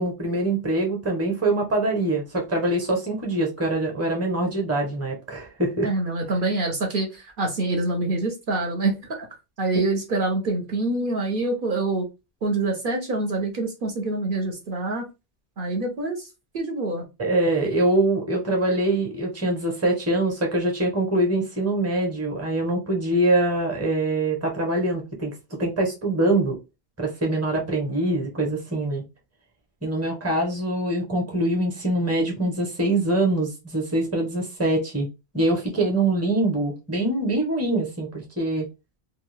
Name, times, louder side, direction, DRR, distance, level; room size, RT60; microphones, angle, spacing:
voice 1, 0.0-5.9 17.2-25.3 25.6-26.6 27.0-29.0 29.8-35.1 35.3-38.7, right 2 dB, 15° right, 0.8 m, -24 dB
voice 2, 5.8-8.9 9.2-9.3 9.6-12.1 12.4-15.0 15.6-16.3 16.5-17.0, right 2 dB, 60° right, 0.8 m, -25 dB
2.6 x 2.3 x 3.2 m
omnidirectional pair, 1.0 m